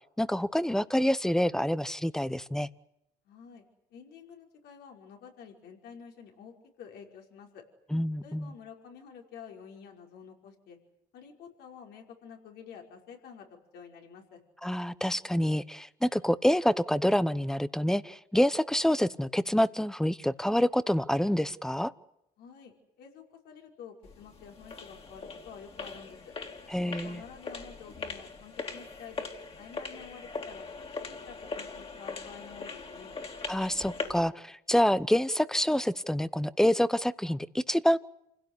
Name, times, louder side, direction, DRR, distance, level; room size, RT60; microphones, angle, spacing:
voice 1, 0.2-2.7 7.9-8.5 14.6-21.9 26.7-27.2 33.5-38.0, equal, 5° left, 16 dB, 1.0 m, -27 dB
voice 2, 3.3-7.6 8.2-10.8 11.1-13.5 13.7-14.4 22.4-26.2 26.8-29.3 29.6-30.7 31.0-33.1, left 7 dB, 75° left, 2 dB, 5.4 m, -49 dB
sound 1, 24.0-34.3, left 4 dB, 35° left, 3.6 m, -41 dB
28.5 x 16.5 x 9.8 m, 0.80 s
cardioid pair, 110°, 17 cm